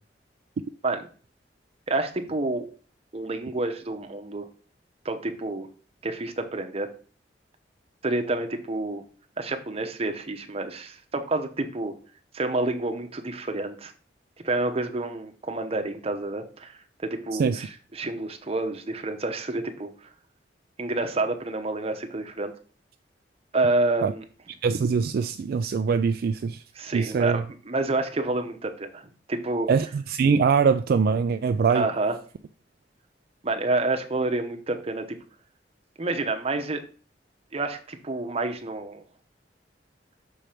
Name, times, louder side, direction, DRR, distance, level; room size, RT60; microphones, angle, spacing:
voice 1, 1.9-2.6 3.1-4.5 5.0-5.7 6.0-6.9 8.0-9.0 9.4-12.0 12.3-13.9 14.4-19.9 20.8-22.5 23.5-24.2 26.8-29.7 31.7-32.2 33.4-35.2 36.0-36.8 37.5-39.0, right 2 dB, 35° right, 0.9 m, -28 dB
voice 2, 17.3-17.6 24.0-24.1 24.6-26.6 26.9-27.4 29.7-31.9, right 5 dB, 60° right, 0.3 m, -23 dB
6.3 x 4.4 x 4.9 m
head